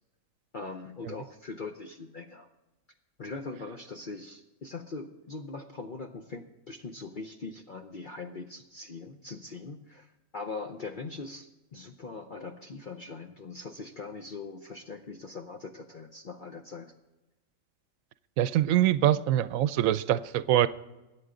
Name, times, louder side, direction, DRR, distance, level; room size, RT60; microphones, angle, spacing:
voice 1, 0.5-2.5 3.2-16.9, left 3 dB, 45° left, 5 dB, 0.8 m, -41 dB
voice 2, 18.4-20.7, right 12 dB, 75° right, 15 dB, 1.0 m, -24 dB
22.5 x 8.8 x 3.8 m, 1.0 s
omnidirectional pair, 1.4 m